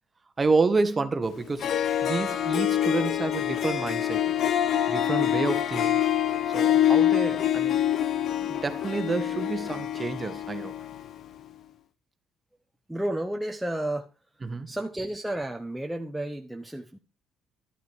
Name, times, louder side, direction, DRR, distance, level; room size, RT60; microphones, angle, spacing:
voice 1, 0.4-1.7 2.0-4.2 4.9-5.9 6.5-7.8 8.4-10.7 14.4-14.8, right 4 dB, 20° right, 1.4 m, -29 dB
Harp, 1.3-1.4 1.6-11.1, left 11 dB, 50° left, 1.0 m, -25 dB
voice 2, 12.9-14.1 14.7-17.0, right 1 dB, 5° right, 0.9 m, -32 dB
12.5 x 8.1 x 4.6 m
cardioid pair, 125°, 0 cm